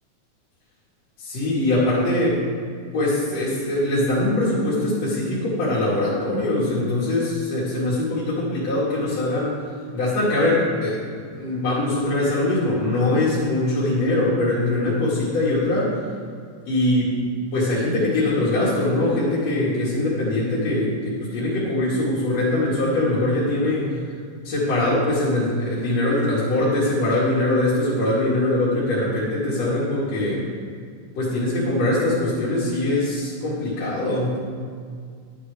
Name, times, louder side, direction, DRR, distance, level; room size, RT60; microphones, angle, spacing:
voice 1, 1.2-2.4 2.9-9.5 9.9-11.0 11.3-16.0 16.7-17.2 17.5-23.9 24.4-30.4 31.2-34.4, left 1 dB, 60° left, -9 dB, 3.1 m, -22 dB
11.0 x 8.3 x 3.4 m, 2.1 s
omnidirectional pair, 3.4 m